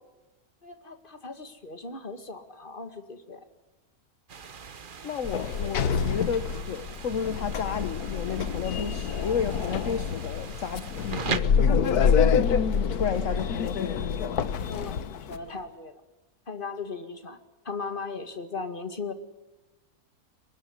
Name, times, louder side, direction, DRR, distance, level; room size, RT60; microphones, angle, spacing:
voice 1, 0.6-3.4 14.7-16.0 16.5-17.4 17.6-19.1, left 4 dB, 35° left, 8 dB, 2.2 m, -37 dB
sound 1, 4.3-11.4, right 6 dB, 40° right, 1.0 m, -39 dB
voice 2, 5.0-11.1 11.5-12.2 12.9-14.0, left 6 dB, 60° left, 11 dB, 1.4 m, -32 dB
Sliding door, 5.2-15.4, left 6 dB, 90° left, 1.6 m, -27 dB
23.5 x 20.5 x 9.8 m, 1.1 s
omnidirectional pair, 1.6 m